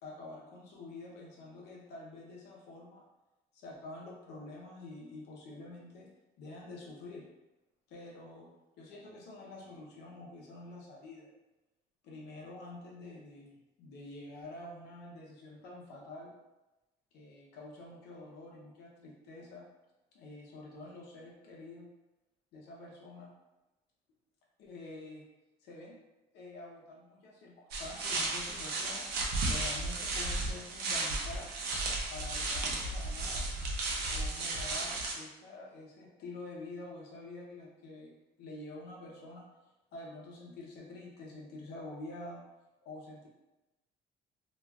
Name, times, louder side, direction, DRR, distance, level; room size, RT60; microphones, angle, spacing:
voice 1, 0.0-3.0 3.5-6.1 6.4-7.2 7.9-8.5 8.8-11.3 12.0-13.5 13.8-16.3 17.1-19.6 20.1-21.9 22.5-23.3 24.6-25.2 25.6-25.9 26.3-29.1 29.5-31.5 32.1-33.5 34.1-38.1 38.4-39.4 39.9-42.4 42.8-43.3, left 2 dB, 85° left, -3 dB, 0.8 m, -47 dB
sound 1, 27.7-35.1, right 2 dB, 70° right, 0.6 m, -34 dB
2.9 x 2.4 x 2.3 m, 1.0 s
cardioid pair, 110°, 17 cm